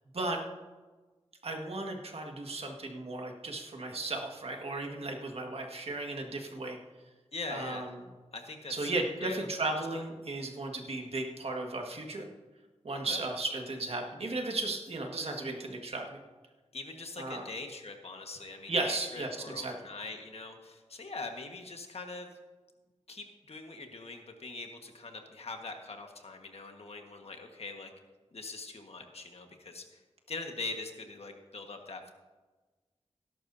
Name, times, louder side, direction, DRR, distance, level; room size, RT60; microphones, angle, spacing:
voice 1, 1.4-6.8 7.5-7.9 8.7-12.3 12.8-16.2 17.2-17.4 18.7-19.7, right 2 dB, 60° right, 2 dB, 1.8 m, -35 dB
voice 2, 7.3-7.9 8.3-8.9 9.2-9.4 9.7-10.0 13.0-13.2 16.7-22.3 23.1-27.9 28.3-30.0 30.3-32.1, left 3 dB, 65° left, 4 dB, 1.5 m, -42 dB
18.0 x 11.0 x 2.7 m, 1.3 s
wide cardioid pair, 70°, 11 cm